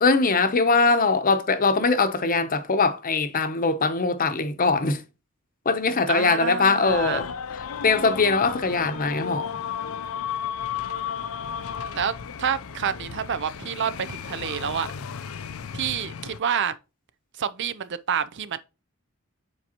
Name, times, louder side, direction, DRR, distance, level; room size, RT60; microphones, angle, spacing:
voice 1, 0.0-5.0 5.6-7.3 7.8-9.6, left 4 dB, 40° left, 0.8 m, -22 dB
voice 2, 6.1-7.2 11.9-12.1 12.4-14.9 15.7-16.7 17.4-18.6, right 7 dB, 55° right, 0.5 m, -28 dB
sound 1, 6.9-16.4, left 8 dB, 75° left, 0.5 m, -34 dB
7.6 x 4.7 x 2.9 m
head